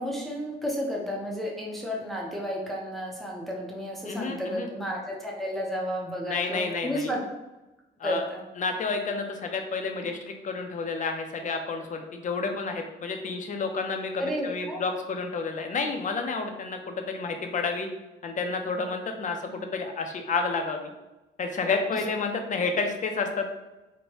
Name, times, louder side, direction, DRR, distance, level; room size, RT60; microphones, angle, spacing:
voice 1, 0.0-7.2 8.0-8.4 14.2-14.8 19.5-19.6 21.9-22.0, equal, ahead, -2 dB, 0.6 m, -32 dB
voice 2, 4.0-4.7 6.3-7.1 8.0-8.2 8.6-17.9 18.2-20.9 21.4-23.5, left 4 dB, 40° left, 4 dB, 0.5 m, -30 dB
3.1 x 2.1 x 2.9 m, 1.1 s
cardioid pair, 90°, 20 cm